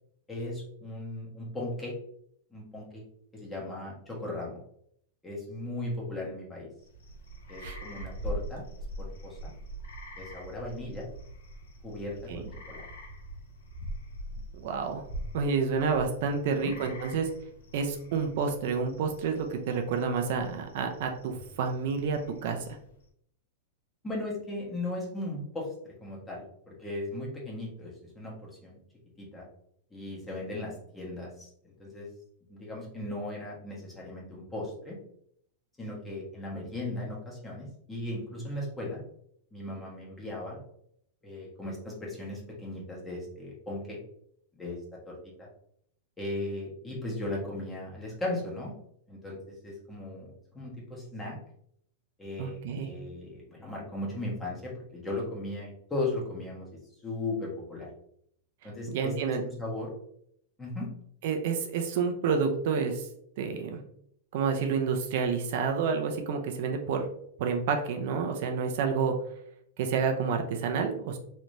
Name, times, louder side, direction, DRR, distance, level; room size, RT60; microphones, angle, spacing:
voice 1, 0.3-2.0 2.5-3.0 3.3-4.6 5.2-6.7 7.5-8.6 9.0-9.5 10.2-11.1 11.8-12.8 16.4-16.7 24.0-28.8 29.2-29.4 29.9-32.1 32.5-35.0 35.8-39.0 39.5-40.6 41.2-44.0 44.5-44.8 45.0-45.5 46.2-48.7 49.1-50.3 50.5-51.4 52.2-56.7 57.0-57.9 58.6-59.9 60.6-60.9, left 2 dB, 10° left, -4 dB, 1.2 m, -37 dB
sound 1, 6.8-23.0, right 1 dB, 80° left, 0.8 m, -43 dB
voice 2, 14.6-15.0 15.3-17.3 17.7-22.6 52.4-52.9 58.9-59.4 61.2-63.1 63.4-63.8 64.3-67.0 67.4-69.1 69.8-71.2, right 5 dB, 60° right, 4 dB, 0.5 m, -29 dB
3.2 x 3.1 x 2.6 m, 0.70 s
supercardioid pair, 140°, 0 cm